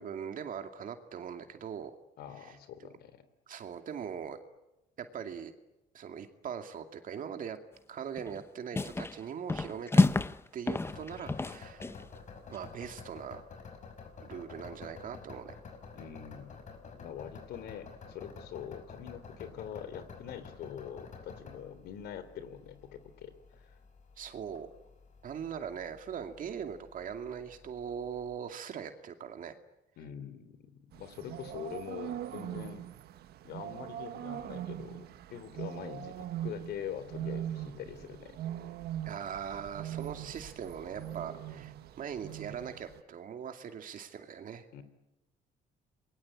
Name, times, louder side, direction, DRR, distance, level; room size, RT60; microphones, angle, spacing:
voice 1, 0.0-1.9 2.4-2.5 3.5-4.4 5.0-5.5 5.9-7.6 7.9-10.1 10.5-11.8 12.5-13.4 14.2-15.5 24.2-24.7 25.2-29.5 39.1-44.7, right 8 dB, 55° right, 6 dB, 2.4 m, -41 dB
voice 2, 2.2-3.2 15.9-23.8 30.0-32.8 33.4-38.4 44.7-44.8, left 9 dB, 75° left, 12 dB, 3.5 m, -44 dB
sound 1, 8.2-8.4 8.7-9.2 9.5-10.4 10.7-12.0, left 3 dB, 15° left, 0.9 m, -28 dB
sound 2, 10.8-28.3, left 5 dB, 45° left, 6.1 m, -50 dB
sound 3, 30.9-43.0, right 11 dB, 70° right, 1.5 m, -41 dB
27.5 x 22.0 x 8.8 m, 0.95 s
cardioid pair, 110°, 17 cm